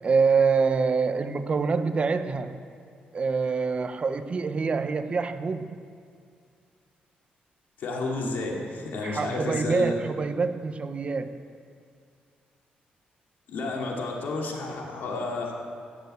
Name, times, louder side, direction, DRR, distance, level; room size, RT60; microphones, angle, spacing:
voice 1, 0.0-2.6 3.1-5.8 9.0-11.4, right 5 dB, 35° right, 10 dB, 0.7 m, -26 dB
voice 2, 7.8-9.9 13.5-15.5, left 2 dB, 75° left, -1 dB, 2.6 m, -31 dB
16.0 x 6.8 x 8.3 m, 2.3 s
cardioid pair, 110°, 3 cm